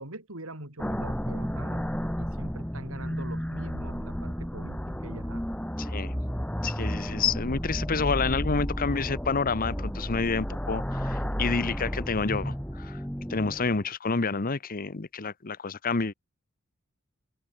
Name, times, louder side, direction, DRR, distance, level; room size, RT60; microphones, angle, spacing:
voice 1, 0.0-5.4, right 1 dB, 75° right, 5.7 m, -43 dB
sound 1, 0.8-13.9, equal, 5° left, 3.2 m, -32 dB
voice 2, 5.8-6.1 6.6-13.0 13.3-16.1, left 4 dB, 45° left, 0.9 m, -29 dB
head